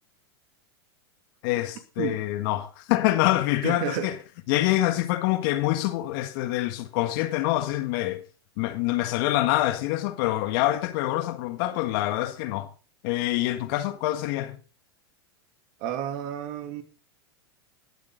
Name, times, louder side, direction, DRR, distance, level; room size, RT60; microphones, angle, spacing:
voice 1, 1.4-4.1 4.5-8.2 8.6-12.7 13.0-14.6, left 15 dB, 60° left, 1.5 m, -26 dB
voice 2, 3.6-4.1 15.8-16.8, right 10 dB, 55° right, 2.7 m, -31 dB
20.5 x 7.5 x 3.8 m
hypercardioid pair, 105°, 13 cm